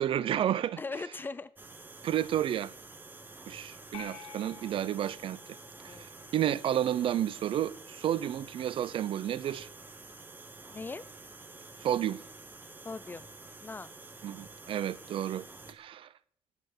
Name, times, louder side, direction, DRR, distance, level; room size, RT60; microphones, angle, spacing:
voice 1, 0.0-0.8 2.0-2.7 3.5-5.4 5.8-6.0 6.3-9.7 11.8-12.2 14.2-16.1, right 11 dB, 50° right, 0.5 m, -31 dB
voice 2, 0.8-1.5 5.9-6.3 10.7-11.0 12.8-13.3 13.6-13.9, left 3 dB, 15° left, 0.5 m, -40 dB
sound 1, 1.6-15.7, right 3 dB, 15° right, 1.0 m, -49 dB
sound 2, 3.9-6.4, left 6 dB, 85° left, 2.9 m, -50 dB
12.5 x 6.6 x 9.7 m
cardioid pair, 160°, 11 cm